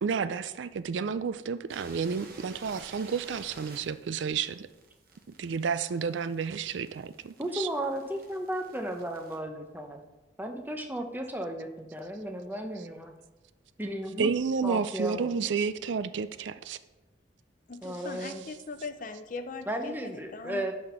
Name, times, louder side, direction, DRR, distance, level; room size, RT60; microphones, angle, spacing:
voice 1, 0.0-4.7 5.4-7.7 14.2-16.8 18.2-18.3, right 6 dB, 75° right, 13 dB, 0.4 m, -31 dB
sound 1, 1.7-9.4, right 3 dB, 50° right, 1.1 m, -53 dB
voice 2, 7.4-10.0 10.4-13.1 13.8-14.3 14.6-15.3 17.8-18.4 19.7-20.7, right 1 dB, 10° right, 4 dB, 0.7 m, -34 dB
voice 3, 17.7-20.7, left 3 dB, 45° left, 9 dB, 0.6 m, -40 dB
11.0 x 4.3 x 4.4 m, 1.1 s
head